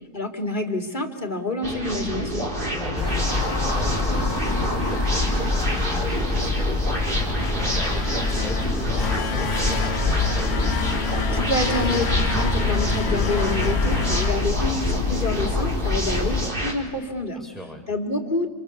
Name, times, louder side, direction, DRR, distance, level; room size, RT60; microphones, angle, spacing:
voice 1, 0.1-2.5 11.3-17.4 17.9-18.5, left 2 dB, 35° left, 3 dB, 2.8 m, -27 dB
sound 1, 1.6-16.7, right 1 dB, 40° right, 4.2 m, -28 dB
voice 2, 2.7-10.5 17.3-17.9, equal, ahead, 4 dB, 3.6 m, -39 dB
sound 2, 3.0-16.5, left 3 dB, 20° left, 1.7 m, -26 dB
sound 3, 7.4-15.2, left 6 dB, 60° left, 1.3 m, -30 dB
30.0 x 28.0 x 7.2 m, 1.2 s
omnidirectional pair, 1.3 m